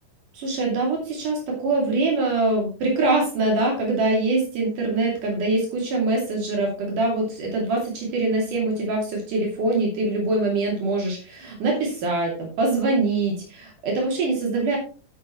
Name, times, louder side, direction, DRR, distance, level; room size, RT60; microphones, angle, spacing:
voice 1, 0.3-14.8, right 2 dB, 75° right, -1 dB, 4.2 m, -24 dB
11.0 x 8.8 x 3.0 m, 0.36 s
omnidirectional pair, 3.7 m